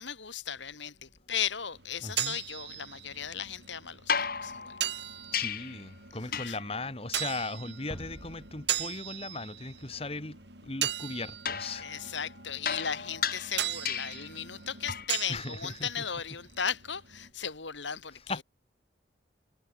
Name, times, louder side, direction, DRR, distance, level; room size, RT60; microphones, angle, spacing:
voice 1, 0.0-4.8 6.3-6.6 11.8-18.4, left 8 dB, 80° left, 2.6 m, -36 dB
sound 1, 1.7-17.3, right 11 dB, 65° right, 5.5 m, -39 dB
voice 2, 2.0-2.4 5.3-11.9 15.3-16.0 18.3-18.4, left 3 dB, 30° left, 2.0 m, -38 dB
sound 2, 4.1-5.9 6.3-6.8 11.4-14.3 14.9-15.2 17.2-17.3, left 7 dB, 50° left, 4.4 m, -35 dB
sound 3, 7.9-10.8, equal, 15° left, 7.4 m, -49 dB
head